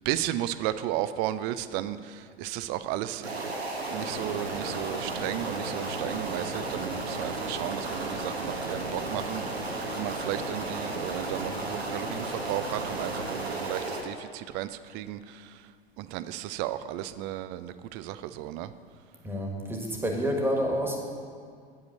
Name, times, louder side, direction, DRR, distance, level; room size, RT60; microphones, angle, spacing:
voice 1, 0.1-15.7 16.0-18.7, right 13 dB, 35° right, 13 dB, 0.4 m, -34 dB
sound 1, 3.2-14.0, right 2 dB, 85° right, 1.1 m, -33 dB
voice 2, 19.2-21.0, equal, 5° right, 1 dB, 1.5 m, -28 dB
8.9 x 5.4 x 6.8 m, 2.1 s
figure-of-eight pair, 85°, 31 cm